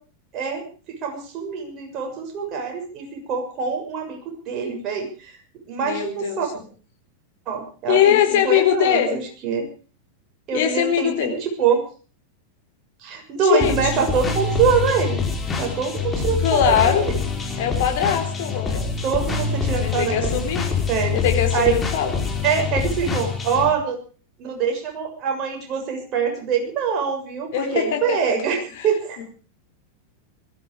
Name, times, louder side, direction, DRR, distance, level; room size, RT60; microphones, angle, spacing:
voice 1, 0.3-4.2 4.4-5.4 5.7-6.5 7.4-9.7 10.5-11.8 13.0-15.2 15.6-17.1 19.0-20.3 20.9-21.2 21.5-21.7 22.4-24.0 24.4-29.2, right 6 dB, 35° right, 2 dB, 6.8 m, -24 dB
voice 2, 5.8-6.4 7.9-9.2 10.5-11.3 13.4-14.0 16.4-17.0 17.6-18.8 19.8-20.7 21.1-22.1 27.5-28.4 28.8-28.9 29.2-29.3, left 9 dB, 50° left, 5 dB, 3.9 m, -21 dB
sound 1, 13.6-23.7, left 5 dB, 20° left, 3.4 m, -25 dB
20.5 x 14.5 x 4.9 m, 0.38 s
figure-of-eight pair, 90°, 0 cm